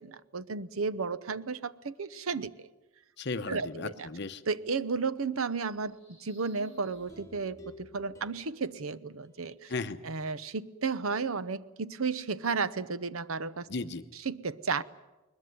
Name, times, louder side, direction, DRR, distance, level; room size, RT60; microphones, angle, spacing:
voice 1, 0.0-2.7 3.5-4.1 4.5-9.7 10.0-13.7 14.1-14.8, right 4 dB, 80° right, 0.8 m, -33 dB
voice 2, 3.2-4.4 9.7-10.0 13.7-14.0, left 3 dB, 55° left, 0.9 m, -35 dB
sound 1, 5.7-8.5, equal, 35° right, 6.6 m, -60 dB
sound 2, 6.6-9.9 10.3-10.4, left 1 dB, 15° left, 2.7 m, -54 dB
21.5 x 20.5 x 9.5 m
head